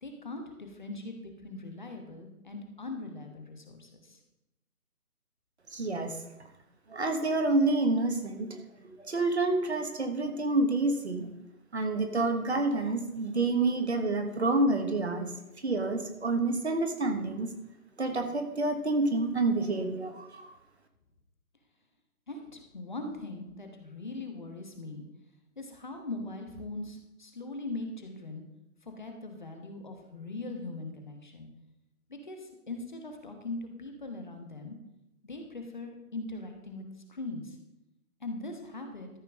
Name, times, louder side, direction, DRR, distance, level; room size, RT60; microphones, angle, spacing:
voice 1, 0.0-1.2 1.4-4.2 22.3-25.0 25.6-28.4 28.8-31.5 32.1-34.7 35.2-36.8 37.1-37.6 38.2-39.1, left 2 dB, 30° left, 4 dB, 1.1 m, -40 dB
voice 2, 5.7-6.1 6.9-11.3 11.7-15.2 15.6-17.5 18.0-20.5, right 2 dB, 45° right, 6 dB, 1.3 m, -28 dB
13.0 x 5.6 x 6.2 m, 0.92 s
figure-of-eight pair, 155°, 47 cm